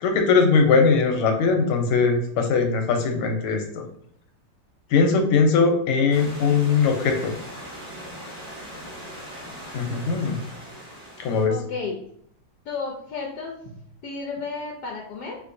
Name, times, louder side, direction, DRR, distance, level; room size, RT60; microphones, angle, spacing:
voice 1, 0.0-3.8 4.9-7.3 9.7-10.4 11.2-11.6, left 5 dB, 90° left, 4 dB, 1.6 m, -20 dB
Stream / Liquid, 6.1-11.4, equal, 40° right, 1.6 m, -40 dB
voice 2, 11.5-12.0 12.7-13.5 14.0-15.4, left 4 dB, 75° left, 0 dB, 1.0 m, -32 dB
4.5 x 2.5 x 2.6 m, 0.69 s
omnidirectional pair, 2.3 m